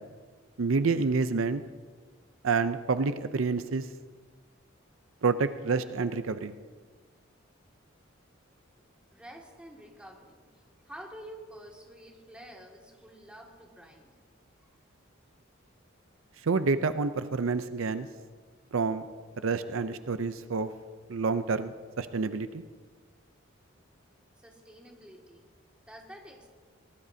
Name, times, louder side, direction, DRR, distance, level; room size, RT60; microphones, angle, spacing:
voice 1, 0.6-1.6 2.4-3.8 5.2-6.5 16.4-18.1 18.7-19.0 19.4-20.7 21.1-22.6, right 4 dB, 80° right, 11 dB, 0.6 m, -28 dB
voice 2, 9.1-10.5 10.8-14.1 24.4-25.4 25.9-26.5, equal, 5° right, -1 dB, 2.1 m, -48 dB
22.0 x 18.5 x 2.8 m, 1.5 s
head